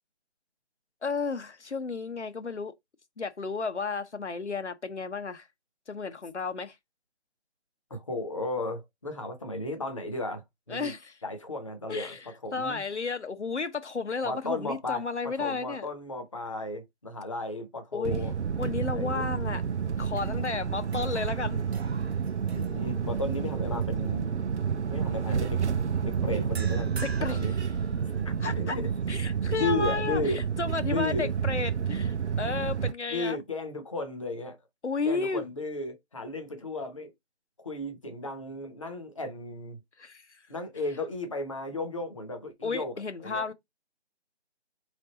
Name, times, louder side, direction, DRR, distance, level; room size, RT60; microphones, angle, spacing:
voice 1, 1.0-2.7 3.2-5.5 5.9-6.8 10.7-11.1 11.9-15.9 17.9-18.2 18.6-19.6 20.0-21.6 26.9-27.4 28.4-28.8 29.1-33.4 34.8-35.4 40.0-40.4 42.6-43.5, left 4 dB, 85° left, 0.8 m, -33 dB
voice 2, 7.9-10.9 11.2-12.8 14.2-18.3 18.9-19.3 22.5-24.3 24.9-25.6 26.0-26.9 27.3-27.5 28.2-28.9 29.5-30.4 30.8-31.3 33.1-34.6 35.0-37.1 37.6-39.8 40.5-42.9 43.2-43.5, left 2 dB, 30° left, 0.7 m, -34 dB
sound 1, 18.0-32.9, right 7 dB, 90° right, 0.5 m, -30 dB
sound 2, 19.0-19.7 20.1-23.4 23.8-24.1 26.5-28.5, right 4 dB, 65° right, 0.9 m, -47 dB
3.7 x 3.3 x 3.9 m
figure-of-eight pair, 155°, 34 cm